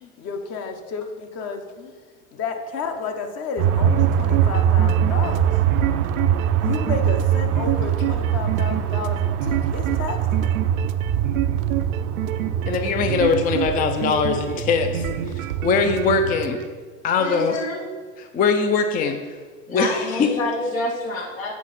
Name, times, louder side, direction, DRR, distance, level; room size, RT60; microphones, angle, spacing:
voice 1, 0.0-1.9 2.3-5.6 6.6-10.6, left 5 dB, 40° left, 5 dB, 1.0 m, -31 dB
sound 1, 3.6-16.5, right 9 dB, 40° right, 0.6 m, -23 dB
sound 2, 3.7-16.6, right 11 dB, 80° right, 0.6 m, -29 dB
voice 2, 12.7-15.1 15.3-16.6 17.0-17.6 18.3-19.4 19.7-20.3, left 5 dB, 20° left, 7 dB, 0.5 m, -21 dB
voice 3, 17.2-17.8 19.7-21.5, left 2 dB, 80° left, -1 dB, 2.0 m, -27 dB
8.2 x 4.9 x 4.2 m, 1.5 s
hypercardioid pair, 100°, 40 cm